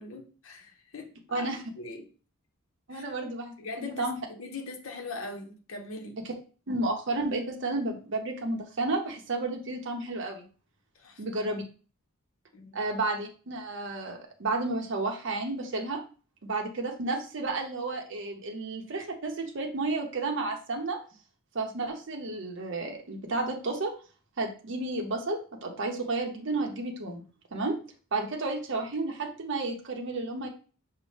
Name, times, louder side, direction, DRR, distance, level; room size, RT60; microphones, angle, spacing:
voice 1, 0.0-1.5 1.8-2.1 2.9-3.0 3.6-6.2 10.9-11.2 12.5-12.8, left 3 dB, 65° left, 3 dB, 0.7 m, -41 dB
voice 2, 1.3-1.6 2.9-4.2 6.7-10.4 11.2-11.6 12.7-16.0 16.4-21.0 21.5-23.9 24.4-27.2 27.5-27.8 28.1-30.5, right 2 dB, 55° right, 2 dB, 0.7 m, -32 dB
5.2 x 2.1 x 3.2 m, 0.38 s
head